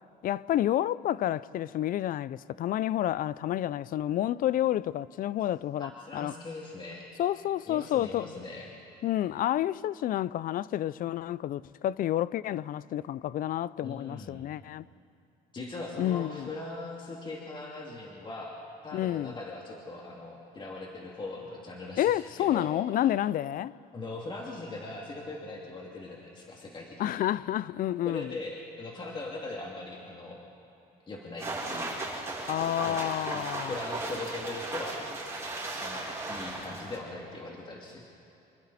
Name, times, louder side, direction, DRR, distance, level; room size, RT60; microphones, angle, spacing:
voice 1, 0.2-6.3 7.2-8.3 9.0-14.8 16.0-16.5 18.9-19.3 22.0-23.7 27.0-28.3 32.5-33.7, left 12 dB, 55° left, 0.4 m, -29 dB
voice 2, 5.8-7.1 7.7-8.7 13.8-14.5 15.5-22.7 23.9-27.2 28.0-30.4 31.1-32.0 32.8-35.1 35.8-38.1, left 2 dB, 30° left, 2.6 m, -40 dB
sound 1, 31.4-37.0, right 2 dB, 15° right, 6.9 m, -36 dB
27.0 x 23.0 x 4.2 m
cardioid pair, 110°, 17 cm